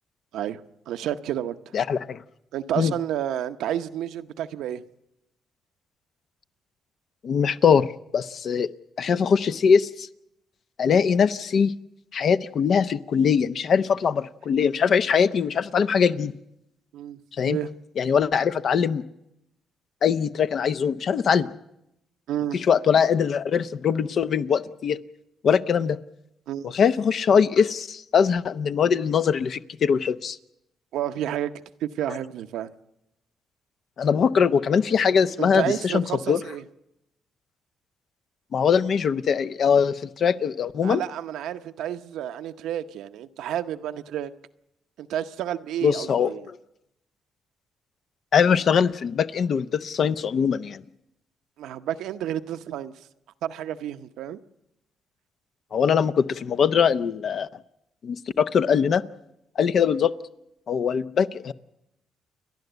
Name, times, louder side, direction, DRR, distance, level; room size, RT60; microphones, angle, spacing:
voice 1, 0.3-1.6 2.5-4.8 16.9-17.7 22.3-22.6 26.5-26.7 30.9-31.5 31.8-32.7 35.4-36.6 40.8-44.3 45.0-46.5 51.6-52.9 53.4-54.4, right 11 dB, 85° right, 0.8 m, -30 dB
voice 2, 1.7-2.2 2.8-2.9 7.2-8.7 9.0-10.1 10.8-11.7 12.1-16.3 17.4-17.6 18.0-19.0 20.0-21.5 22.5-25.0 25.4-26.0 26.6-30.4 34.0-36.4 38.5-41.0 45.8-46.3 48.3-50.8 55.7-57.5 58.0-59.0 59.6-60.1 60.7-61.5, left 7 dB, 60° left, 0.7 m, -22 dB
29.5 x 11.0 x 8.0 m
cardioid pair, 90°, 0 cm